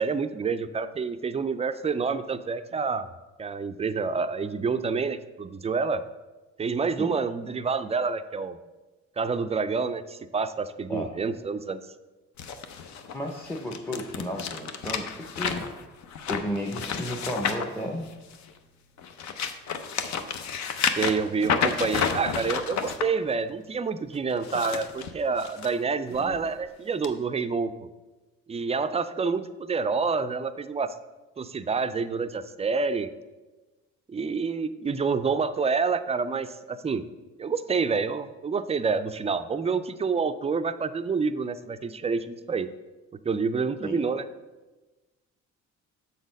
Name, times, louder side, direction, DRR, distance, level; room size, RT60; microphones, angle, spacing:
voice 1, 0.0-3.1 3.4-6.0 6.6-8.6 9.2-11.8 21.0-27.9 28.5-30.9 31.4-33.1 34.1-37.0 37.4-42.7 43.2-44.2, right 5 dB, 20° right, 11 dB, 0.3 m, -28 dB
sound 1, 12.4-18.5 19.0-23.0 24.3-25.7 26.1-26.4 27.0-27.1, left 7 dB, 65° left, 0.6 m, -31 dB
voice 2, 13.1-15.7 16.2-18.1 26.2-26.4 43.8-44.0, equal, 10° left, 1 dB, 0.7 m, -33 dB
7.0 x 4.1 x 5.2 m, 1.2 s
cardioid pair, 90°, 30 cm